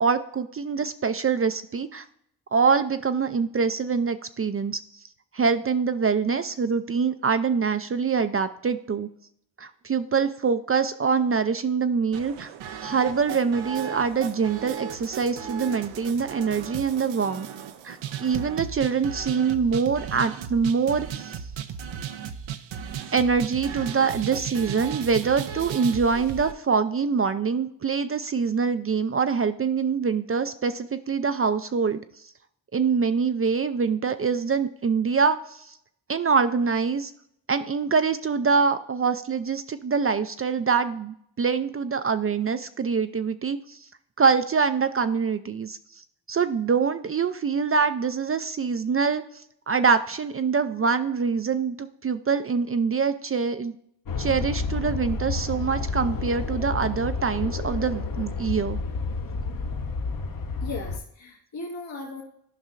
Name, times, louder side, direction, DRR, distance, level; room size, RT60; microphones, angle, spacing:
voice 1, 0.0-2.0 2.5-4.8 5.3-9.1 9.6-12.5 12.8-17.5 17.8-21.4 23.1-32.0 32.7-35.4 35.7-35.8 36.1-37.1 37.5-43.8 44.2-45.8 46.3-49.2 49.7-53.8 54.2-58.8, right 5 dB, 30° right, 10 dB, 0.4 m, -24 dB
sound 1, 12.1-26.5, right 8 dB, 85° right, 0.7 m, -36 dB
sound 2, 54.1-61.0, left 4 dB, 45° left, 0.9 m, -30 dB
voice 2, 60.6-62.2, left 3 dB, 75° left, -2 dB, 1.8 m, -36 dB
12.5 x 5.4 x 2.5 m, 0.71 s
supercardioid pair, 50°, 45 cm